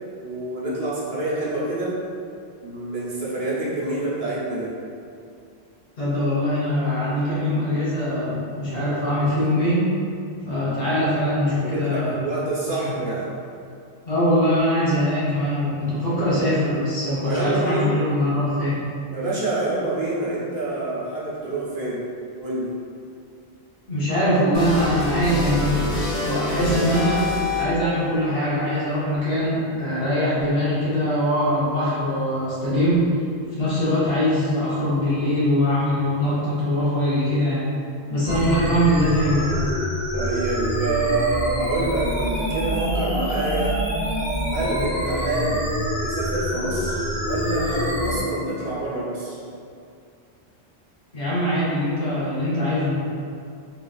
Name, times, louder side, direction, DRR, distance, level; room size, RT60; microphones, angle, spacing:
voice 1, 0.2-2.0 2.6-4.7 11.5-13.3 16.3-16.5 17.1-18.0 19.1-22.0 22.4-22.7 38.5-38.6 40.1-43.8 44.5-45.7 46.0-49.4, right 2 dB, 70° right, -8 dB, 1.0 m, -27 dB
voice 2, 6.0-9.8 10.5-12.2 12.7-13.1 14.0-18.8 23.9-25.9 26.2-27.2 27.6-33.1 33.6-37.7 38.1-39.5 51.1-52.9, equal, 65° left, -10 dB, 1.2 m, -22 dB
sound 1, 24.5-28.0, left 2 dB, 45° left, 0.4 m, -26 dB
sound 2, 38.2-48.2, equal, 25° left, 1.0 m, -26 dB
3.2 x 2.4 x 2.3 m, 2.4 s
omnidirectional pair, 1.1 m